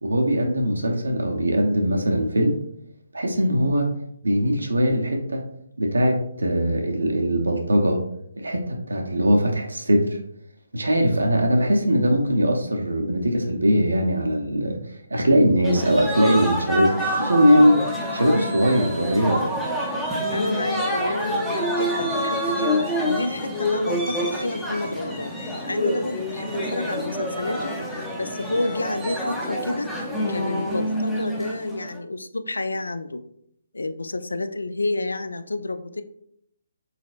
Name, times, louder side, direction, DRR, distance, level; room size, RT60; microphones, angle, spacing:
voice 1, 0.0-2.6 3.1-3.9 4.2-5.4 5.8-8.0 8.4-10.1 10.7-19.5, equal, 75° right, 1 dB, 0.7 m, -21 dB
sound 1, 15.6-32.0, equal, 5° left, 0.6 m, -27 dB
voice 2, 20.3-25.3 25.7-27.8 28.2-29.9 30.3-33.2 33.7-36.0, left 2 dB, 75° left, 11 dB, 0.3 m, -29 dB
4.1 x 4.1 x 2.4 m, 0.71 s
figure-of-eight pair, 140°, 0 cm